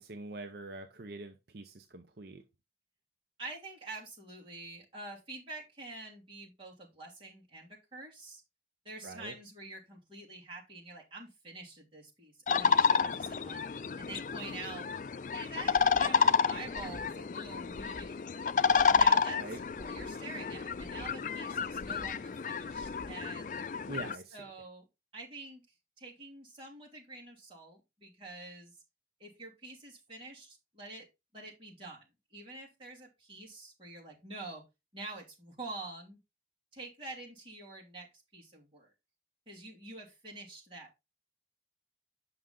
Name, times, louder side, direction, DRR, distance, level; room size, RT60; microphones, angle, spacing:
voice 1, 0.0-2.4 9.0-9.4 19.3-19.6 23.9-24.5, right 2 dB, 65° right, 0.7 m, -44 dB
voice 2, 3.4-8.4 8.8-13.6 14.0-14.9 15.3-18.2 18.8-23.6 24.3-24.8 25.1-25.6 26.0-28.7 29.2-31.0 31.3-32.0 32.3-34.6 34.9-36.2 36.7-38.1 38.3-38.9 39.5-41.0, right 2 dB, 30° right, 3.0 m, -46 dB
sound 1, 12.5-24.2, left 5 dB, 45° left, 0.3 m, -30 dB
sound 2, 15.6-16.1 16.5-17.1 17.5-18.1 18.5-19.1 19.5-20.1 20.5-21.1 21.5-22.1 22.5-23.1, equal, 5° right, 1.6 m, -52 dB
7.6 x 5.7 x 3.7 m
head